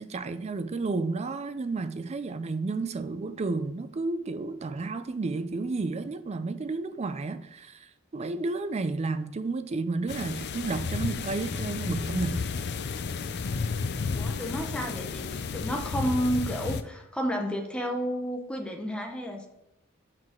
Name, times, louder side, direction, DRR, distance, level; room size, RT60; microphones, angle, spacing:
voice 1, 0.0-12.4, right 3 dB, 30° right, 0.4 m, -32 dB
sound 1, 10.1-16.8, left 5 dB, 55° left, 0.5 m, -32 dB
voice 2, 14.2-19.5, equal, 5° left, 0.9 m, -31 dB
6.0 x 4.8 x 4.3 m
head